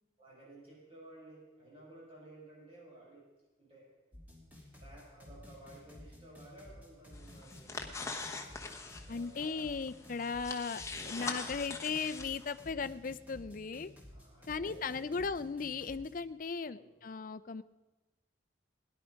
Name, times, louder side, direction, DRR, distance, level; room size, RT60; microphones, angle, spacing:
voice 1, 0.2-3.3 3.6-3.9 4.8-8.3 8.8-9.7 14.1-15.2 16.6-17.0, right 1 dB, 30° right, -5 dB, 5.7 m, -55 dB
sound 1, 4.1-16.1, left 1 dB, 10° right, 2.9 m, -53 dB
sound 2, 7.1-12.7, left 3 dB, 15° left, 1.0 m, -43 dB
voice 2, 9.1-13.9 14.5-17.6, left 5 dB, 45° left, 13 dB, 0.5 m, -37 dB
17.0 x 11.0 x 5.1 m, 1.2 s
head